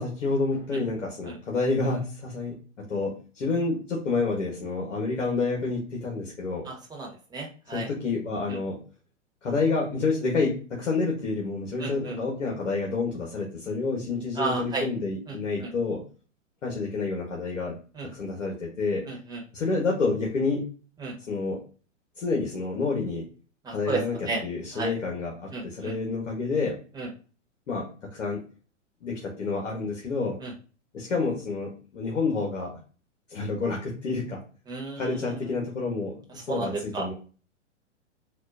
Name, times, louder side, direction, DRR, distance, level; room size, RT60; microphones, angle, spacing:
voice 1, 0.0-6.7 7.7-8.8 9.4-16.0 16.6-17.7 18.0-19.1 19.5-20.6 21.3-21.6 22.2-23.3 23.7-26.8 27.7-28.4 29.0-30.4 30.9-32.8 33.3-34.4 35.0-37.1, left 3 dB, 80° left, -1 dB, 1.4 m, -29 dB
voice 2, 6.7-7.9 11.8-12.2 14.4-14.9 15.3-15.4 18.0-18.1 19.1-19.4 21.0-21.2 23.6-24.4 24.7-24.9 25.5-25.9 27.0-27.1 30.4-30.5 34.7-35.2 36.5-37.1, right 3 dB, 10° right, -1 dB, 1.2 m, -32 dB
4.2 x 2.6 x 2.5 m, 0.38 s
hypercardioid pair, 110°, 37 cm